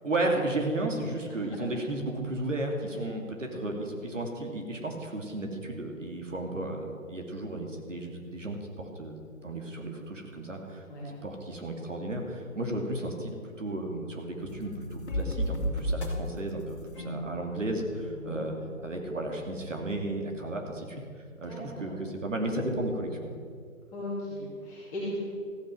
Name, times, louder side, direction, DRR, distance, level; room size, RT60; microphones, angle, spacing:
voice 1, 0.0-18.5 18.8-21.0 21.4-23.3, right 1 dB, 60° right, 2 dB, 2.7 m, -34 dB
sound 1, 14.4-21.2, equal, 40° left, 2.3 m, -36 dB
voice 2, 21.5-21.9 23.9-25.2, equal, 5° left, -8 dB, 2.4 m, -38 dB
14.5 x 9.1 x 7.7 m, 2.2 s
figure-of-eight pair, 160°, 41 cm